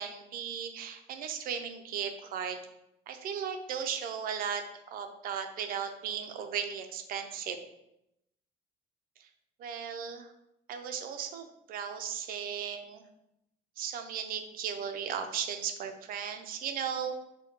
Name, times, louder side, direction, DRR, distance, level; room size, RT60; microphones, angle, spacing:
voice 1, 0.0-2.6 3.1-4.6 4.9-7.6 9.2-9.3 9.6-10.3 10.7-13.0 13.8-17.1, right 7 dB, 55° right, 7 dB, 0.5 m, -36 dB
5.7 x 2.2 x 2.9 m, 0.85 s
cardioid pair, 155°, 18 cm